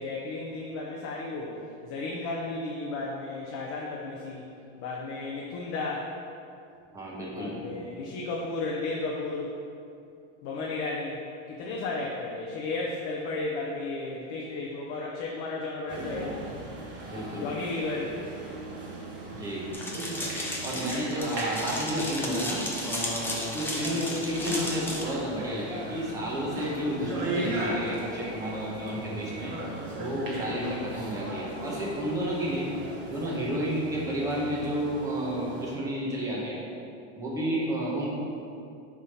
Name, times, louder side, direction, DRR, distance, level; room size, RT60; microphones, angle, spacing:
voice 1, 0.0-4.5 4.8-6.1 7.3-9.5 10.4-11.2 11.5-16.4 17.4-18.1 23.8-24.2 29.9-30.0 32.5-33.0, left 3 dB, 40° left, -3 dB, 0.7 m, -34 dB
voice 2, 6.9-7.9 17.1-17.6 19.3-19.7 20.6-32.7 33.1-36.6 37.2-38.1, equal, 10° right, -6 dB, 1.2 m, -31 dB
sound 1, 15.9-35.7, right 1 dB, 30° right, 1.4 m, -38 dB
sound 2, 19.7-25.0, left 1 dB, 5° left, 0.6 m, -34 dB
6.7 x 3.7 x 5.7 m, 2.6 s
supercardioid pair, 160°, 35 cm